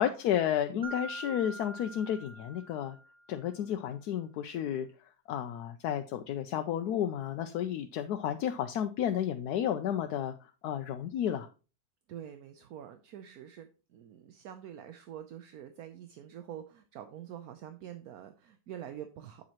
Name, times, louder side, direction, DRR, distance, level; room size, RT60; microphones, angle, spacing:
voice 1, 0.0-3.0 3.3-4.9 5.3-10.3 10.6-11.5, left 10 dB, 75° left, 7 dB, 1.1 m, -32 dB
Mallet percussion, 0.8-3.4, right 1 dB, 40° right, 1.5 m, -44 dB
voice 2, 12.1-19.5, right 10 dB, 70° right, 8 dB, 1.1 m, -46 dB
8.3 x 7.4 x 2.9 m, 0.34 s
omnidirectional pair, 1.7 m